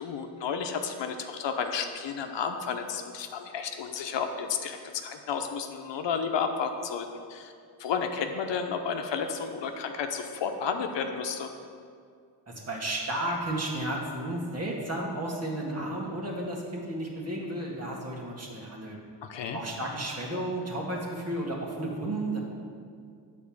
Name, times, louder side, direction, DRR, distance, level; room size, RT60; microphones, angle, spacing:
voice 1, 0.0-7.5 7.8-11.5 19.2-19.6, left 6 dB, 75° left, 5 dB, 0.8 m, -32 dB
voice 2, 12.5-19.0 19.5-22.4, right 1 dB, 35° right, -2 dB, 1.8 m, -33 dB
8.5 x 4.3 x 7.1 m, 2.3 s
cardioid pair, 90°, 44 cm